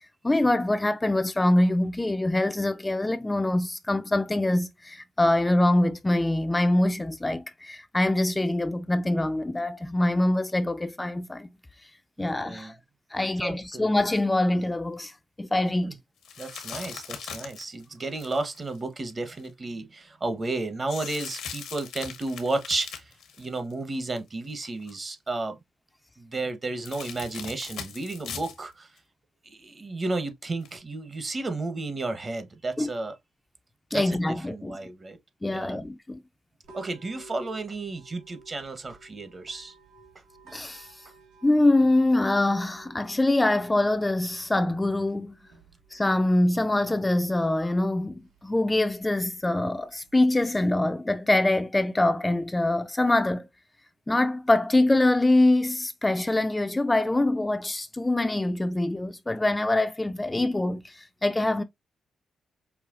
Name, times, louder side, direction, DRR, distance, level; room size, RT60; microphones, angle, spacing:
voice 1, 0.2-11.5 12.2-12.7 13.1-15.1 15.4-15.9 32.8-32.9 33.9-34.8 35.4-36.2 40.5-40.9 41.4-45.4 45.9-53.5 54.1-61.6, left 1 dB, 20° left, 0.5 m, -24 dB
voice 2, 12.2-12.7 13.4-13.9 15.8-16.0 16.4-25.6 26.2-28.9 29.4-33.1 33.9-34.2 34.5-35.2 35.5-35.8 36.7-39.7, right 2 dB, 40° right, 1.1 m, -33 dB
sound 1, 16.2-19.5 20.9-24.2 24.5-24.9 26.8-28.6 29.0-29.1 30.6-30.8, left 7 dB, 80° left, 1.0 m, -40 dB
sound 2, 36.6-50.6, right 4 dB, 85° right, 1.6 m, -55 dB
5.6 x 2.3 x 2.5 m
supercardioid pair, 50°, 0 cm